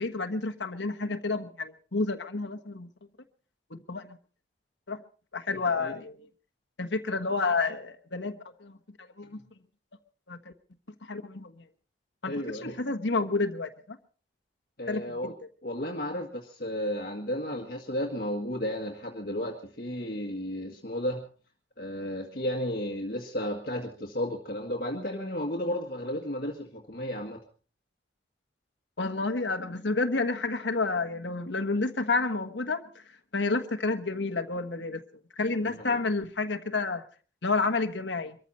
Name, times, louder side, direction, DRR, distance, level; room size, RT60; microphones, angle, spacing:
voice 1, 0.0-2.9 3.7-4.2 4.9-5.0 5.3-6.2 6.8-9.4 10.3-10.5 11.0-11.6 12.2-14.0 14.9-15.0 29.0-33.0 33.3-35.0 35.4-37.0 37.4-38.4, left 3 dB, 75° left, 6 dB, 1.3 m, -30 dB
voice 2, 5.6-5.9 12.3-12.8 14.8-15.3 15.6-21.3 21.8-27.4 35.8-36.0, equal, 50° left, 1 dB, 1.9 m, -33 dB
24.0 x 14.0 x 4.2 m, 0.40 s
head